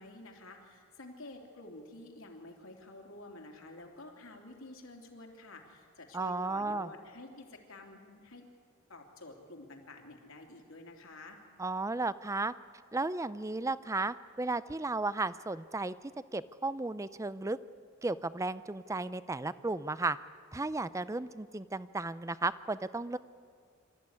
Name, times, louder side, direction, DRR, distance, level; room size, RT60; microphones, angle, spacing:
voice 1, 0.0-8.5 8.9-11.4, left 2 dB, 75° left, 2 dB, 3.2 m, -50 dB
voice 2, 6.1-6.9 11.6-12.5 12.9-15.9 16.3-17.6 18.0-20.2 20.5-23.2, right 3 dB, 15° right, 16 dB, 0.5 m, -34 dB
26.5 x 14.0 x 9.7 m, 2.1 s
head